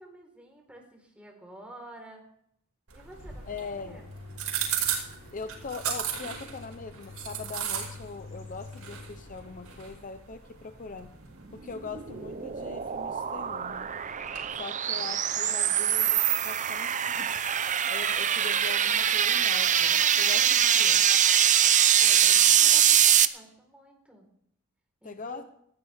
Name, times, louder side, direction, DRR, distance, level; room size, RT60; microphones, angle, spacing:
voice 1, 0.0-2.2 2.9-3.5 3.8-4.0 14.9-15.0 22.0-24.3 25.0-25.4, right 1 dB, 5° right, 1 dB, 4.1 m, -49 dB
sound 1, 2.9-14.5, right 8 dB, 85° right, 5.4 m, -37 dB
sound 2, 3.1-10.0, left 3 dB, 60° left, 6.4 m, -47 dB
voice 2, 3.5-4.1 5.3-11.1 11.5-13.9 14.6-21.1 25.0-25.4, left 4 dB, 35° left, 9 dB, 0.7 m, -41 dB
sound 3, 11.6-23.3, right 9 dB, 35° right, 0.6 m, -23 dB
20.0 x 15.5 x 3.5 m, 0.71 s
head